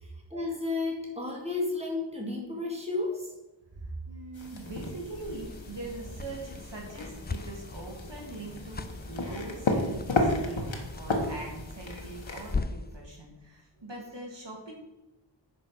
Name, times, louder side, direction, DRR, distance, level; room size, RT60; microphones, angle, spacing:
voice 1, 0.0-3.3, left 3 dB, 15° right, -2 dB, 2.4 m, -32 dB
voice 2, 3.7-14.7, right 2 dB, 70° right, -2 dB, 2.6 m, -42 dB
sound 1, 4.3-12.6, left 2 dB, 85° left, 1.5 m, -33 dB
sound 2, 4.9-13.0, left 3 dB, 25° left, 0.4 m, -40 dB
9.4 x 5.2 x 6.3 m, 0.99 s
wide cardioid pair, 50°, 45 cm